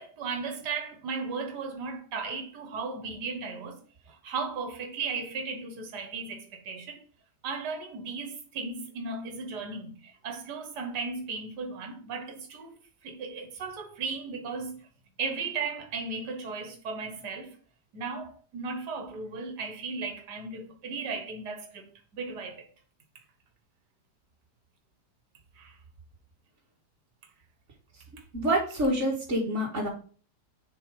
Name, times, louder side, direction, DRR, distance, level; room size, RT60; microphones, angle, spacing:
voice 1, 0.0-3.8 4.2-7.0 7.4-10.0 10.2-12.7 13.0-14.8 15.2-17.5 17.9-21.9 22.1-22.6 25.6-25.7, right 4 dB, 70° right, 1.9 m, -36 dB
voice 2, 28.3-29.9, right 1 dB, 45° right, 1.8 m, -27 dB
6.7 x 4.6 x 4.9 m
omnidirectional pair, 1.8 m